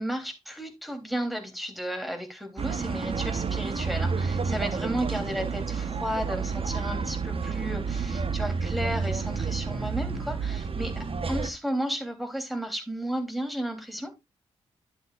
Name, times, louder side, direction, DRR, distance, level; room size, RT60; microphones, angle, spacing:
voice 1, 0.0-14.2, equal, ahead, 3.4 m, -33 dB
sound 1, 2.6-11.5, right 5 dB, 45° right, 1.1 m, -30 dB
11.0 x 8.2 x 2.5 m
hypercardioid pair, 40°, 13 cm